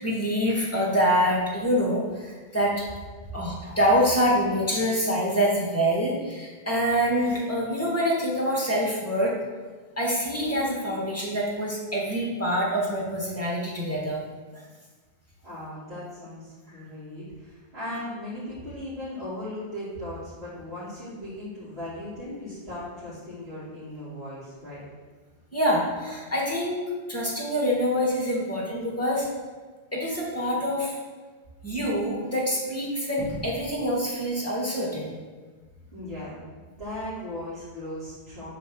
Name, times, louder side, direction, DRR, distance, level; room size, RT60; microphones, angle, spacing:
voice 1, 0.0-2.7 3.3-9.3 10.0-14.2 16.7-16.8 25.5-26.8 27.1-29.3 29.9-31.0 31.6-35.2, equal, 15° left, -4 dB, 1.9 m, -25 dB
voice 2, 15.4-24.8 35.9-36.4 36.7-38.5, left 1 dB, 70° right, -14 dB, 2.9 m, -37 dB
7.8 x 4.1 x 6.4 m, 1.4 s
omnidirectional pair, 1.1 m